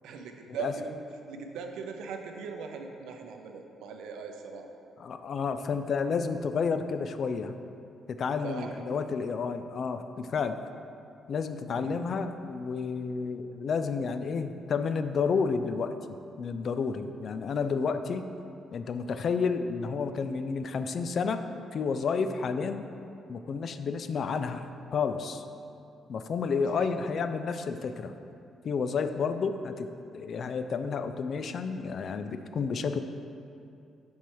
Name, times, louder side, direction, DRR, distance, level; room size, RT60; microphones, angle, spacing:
voice 1, 0.0-1.0 1.3-4.7 8.4-8.8 11.6-12.0 26.7-26.9, right 5 dB, 85° right, 4 dB, 0.5 m, -39 dB
voice 2, 5.0-7.5 8.1-10.6 11.3-18.3 18.7-21.4 21.7-22.8 23.3-24.7 24.9-25.4 26.1-28.1 28.6-29.9 30.1-33.0, left 5 dB, 55° left, 9 dB, 0.3 m, -30 dB
5.4 x 4.4 x 4.7 m, 2.6 s
cardioid pair, 90°, 0 cm